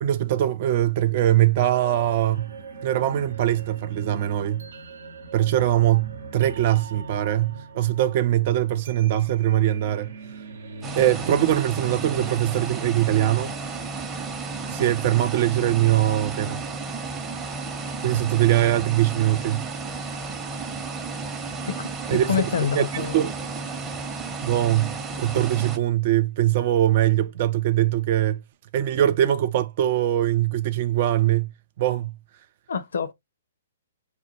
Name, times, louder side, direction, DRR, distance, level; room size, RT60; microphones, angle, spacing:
voice 1, 0.0-2.5 2.8-4.7 5.3-10.1 11.0-13.5 14.7-16.6 18.0-19.7 22.1-22.3 22.6-23.3 24.4-28.4 28.7-31.5 31.8-32.2, right 12 dB, 45° right, 0.4 m, -22 dB
sound 1, 1.7-14.7, right 3 dB, 70° right, 0.7 m, -41 dB
sound 2, 10.8-25.8, right 4 dB, 20° right, 0.7 m, -33 dB
voice 2, 22.3-23.2 32.7-33.1, left 8 dB, 65° left, 0.5 m, -26 dB
4.1 x 2.1 x 2.8 m
figure-of-eight pair, 120°, 0 cm